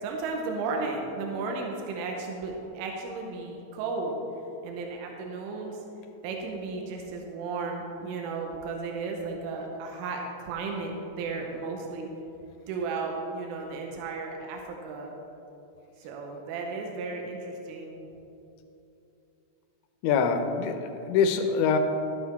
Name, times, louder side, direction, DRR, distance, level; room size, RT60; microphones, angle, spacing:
voice 1, 0.0-4.2 4.6-5.8 6.2-12.1 12.7-15.1 16.0-18.1, right 4 dB, 90° right, 1 dB, 3.3 m, -34 dB
voice 2, 20.0-21.8, left 6 dB, 80° left, 6 dB, 2.8 m, -24 dB
12.5 x 9.4 x 3.4 m, 2.8 s
omnidirectional pair, 5.6 m